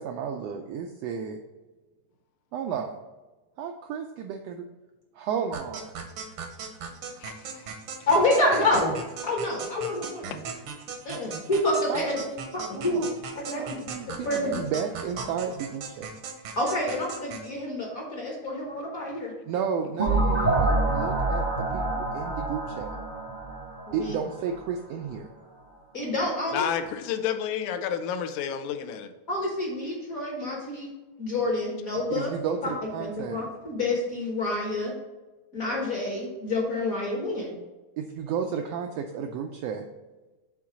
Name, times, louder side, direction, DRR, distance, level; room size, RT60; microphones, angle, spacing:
voice 1, 0.0-1.4 2.5-3.0 3.6-4.7 5.1-5.9 11.9-13.2 13.6-16.2 19.5-22.9 23.9-25.3 32.1-33.4 38.0-39.9, right 7 dB, 85° right, 5 dB, 1.4 m, -33 dB
sound 1, 5.5-17.5, right 5 dB, 70° right, 1.3 m, -39 dB
voice 2, 7.2-7.7 10.0-10.4 26.5-29.1, left 8 dB, 85° left, 9 dB, 2.1 m, -31 dB
voice 3, 8.1-8.9 9.2-10.2 11.0-12.2 12.5-13.0 13.5-13.7 14.2-14.6 16.6-19.3 23.9-24.2 25.9-26.6 29.3-30.9 31.2-32.3 32.6-32.7 33.0-34.9 35.5-37.5, left 1 dB, 50° left, -1 dB, 1.0 m, -27 dB
sound 2, 20.0-24.7, right 2 dB, 40° right, 0.6 m, -27 dB
7.1 x 3.8 x 5.9 m, 1.2 s
omnidirectional pair, 3.4 m